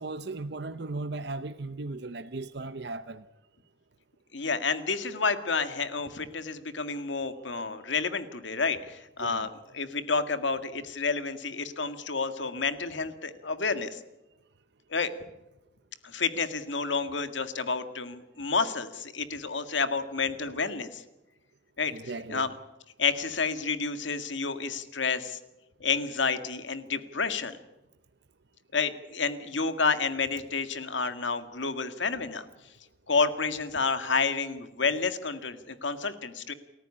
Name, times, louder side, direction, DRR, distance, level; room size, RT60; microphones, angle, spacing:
voice 1, 0.0-3.2 9.2-9.5 21.9-22.5, right 3 dB, 60° right, 0.8 m, -37 dB
voice 2, 4.3-9.5 9.7-14.0 14.9-15.1 16.0-21.0 21.8-21.9 22.3-22.5 23.0-25.4 25.8-27.6 28.7-32.5 33.1-36.5, left 4 dB, 75° left, 1.9 m, -30 dB
29.0 x 14.0 x 9.9 m
head